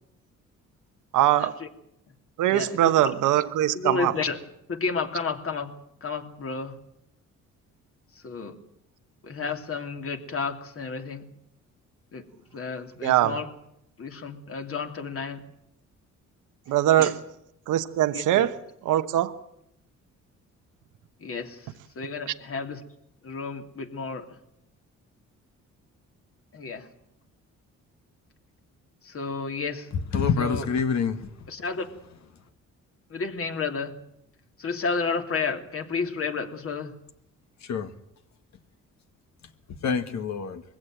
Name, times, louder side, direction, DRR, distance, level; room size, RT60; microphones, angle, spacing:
voice 1, 1.1-1.6 2.4-4.1 13.0-13.4 16.7-17.2 17.7-18.5 18.8-19.3, right 13 dB, 85° right, 1.1 m, -22 dB
voice 2, 2.5-3.1 3.7-4.4 4.7-5.7 6.0-6.7 8.1-8.5 9.2-11.3 12.1-12.2 12.5-13.5 14.0-15.4 17.0-17.1 18.1-18.5 21.2-22.8 23.2-24.4 26.5-26.9 29.0-29.9 30.4-30.7 31.5-31.9 33.1-33.9 34.6-36.9, left 4 dB, 45° left, 2.9 m, -31 dB
voice 3, 29.9-31.3 37.6-37.9 39.8-40.6, left 6 dB, 65° left, 2.0 m, -26 dB
22.0 x 16.0 x 9.0 m
cardioid pair, 90°, 30 cm